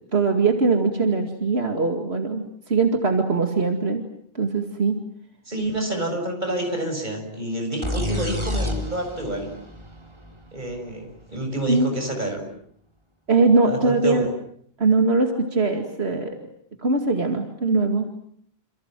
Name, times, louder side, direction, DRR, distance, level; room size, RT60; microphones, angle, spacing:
voice 1, 0.1-4.0 4.3-4.9 11.6-11.9 13.3-14.3 14.8-16.4 16.8-18.1, right 3 dB, 80° right, 4 dB, 2.6 m, -21 dB
voice 2, 5.5-9.5 10.5-12.4 13.6-14.3, right 1 dB, 50° right, 4 dB, 7.2 m, -28 dB
sound 1, 7.8-11.5, left 1 dB, 25° right, 3.4 m, -30 dB
28.5 x 28.0 x 7.6 m, 0.65 s
omnidirectional pair, 1.0 m